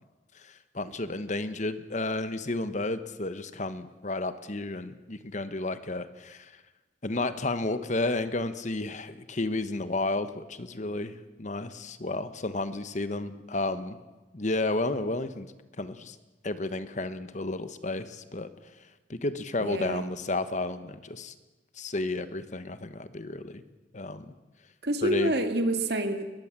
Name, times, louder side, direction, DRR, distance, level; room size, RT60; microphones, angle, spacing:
voice 1, 0.3-6.5 7.0-14.0 14.3-15.5 15.8-16.2 16.4-18.5 19.1-21.3 21.8-23.6 23.9-24.3 25.0-25.3, left 2 dB, 45° left, 11 dB, 1.2 m, -32 dB
voice 2, 19.6-20.1 24.8-26.3, right 1 dB, 65° right, 6 dB, 2.2 m, -28 dB
21.5 x 21.0 x 7.5 m, 1.2 s
head